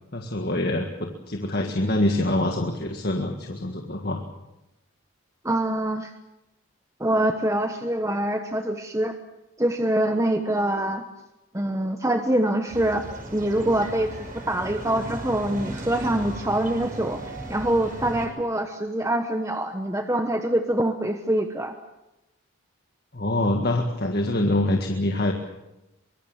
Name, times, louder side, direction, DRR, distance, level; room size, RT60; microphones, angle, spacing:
voice 1, 0.1-4.2 23.1-25.3, left 1 dB, 45° left, 3 dB, 1.8 m, -25 dB
voice 2, 5.4-6.1 7.0-9.1 9.6-11.0 11.5-21.7, right 1 dB, 15° right, 6 dB, 1.1 m, -25 dB
sound 1, 12.7-18.3, right 1 dB, 40° right, 5.8 m, -36 dB
24.0 x 22.5 x 7.3 m, 0.93 s
head